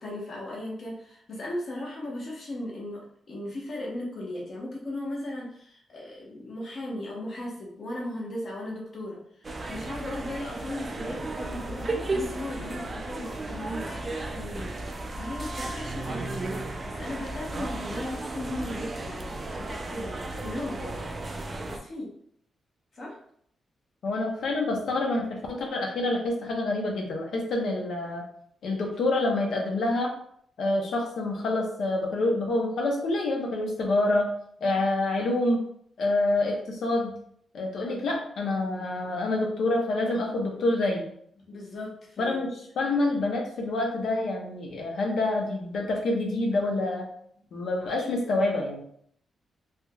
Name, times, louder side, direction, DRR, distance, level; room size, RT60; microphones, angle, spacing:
voice 1, 0.0-14.7 15.1-16.5 16.9-21.0 21.7-22.1 22.9-23.2 37.8-38.1 41.5-42.4, left 1 dB, 40° left, -3 dB, 0.9 m, -37 dB
sound 1, 9.4-21.8, right 2 dB, 25° right, 0.3 m, -34 dB
voice 2, 24.0-28.2 28.6-30.2 30.6-34.3 34.6-35.6 36.0-37.1 37.5-41.1 42.2-47.1 47.5-48.8, left 2 dB, 65° left, 1 dB, 0.6 m, -27 dB
3.4 x 2.8 x 2.2 m, 0.66 s
wide cardioid pair, 175°, 0 cm